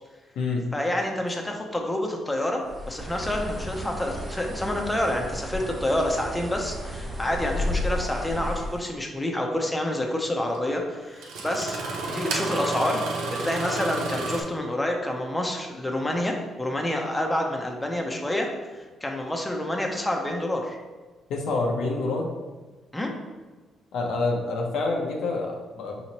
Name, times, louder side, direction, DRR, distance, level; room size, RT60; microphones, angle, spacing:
voice 1, 0.7-2.6 2.9-11.8 12.1-13.0 13.3-18.5 18.7-20.8 22.9-23.1, left 1 dB, 10° left, 1 dB, 0.6 m, -28 dB
Bird, 2.6-8.9, left 1 dB, 25° right, 0.7 m, -33 dB
Engine starting, 8.9-9.0 10.5-10.6 11.2-14.4, right 3 dB, 90° right, 0.5 m, -31 dB
voice 2, 21.3-22.3 23.9-26.0, left 3 dB, 80° left, 0 dB, 0.7 m, -27 dB
4.8 x 3.0 x 2.8 m, 1.3 s
cardioid pair, 90°, 0 cm